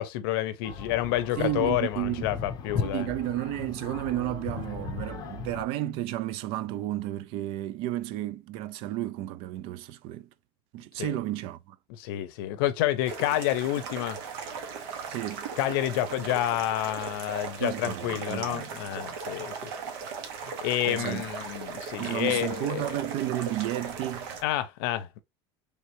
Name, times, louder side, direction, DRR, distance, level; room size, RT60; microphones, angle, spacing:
voice 1, 0.0-3.1 11.0-11.2 12.0-14.2 15.6-19.7 20.6-22.9 24.4-25.2, left 13 dB, 80° left, 0.6 m, -29 dB
sound 1, 0.6-5.6, left 5 dB, 30° left, 0.7 m, -37 dB
voice 2, 1.4-2.3 2.8-10.3 10.7-11.8 15.1-15.5 17.6-18.7 20.9-21.2 22.0-24.3, right 14 dB, 50° right, 0.4 m, -32 dB
sound 2, 13.0-24.4, right 5 dB, 75° right, 1.0 m, -38 dB
3.3 x 3.2 x 2.9 m
cardioid pair, 165°, 12 cm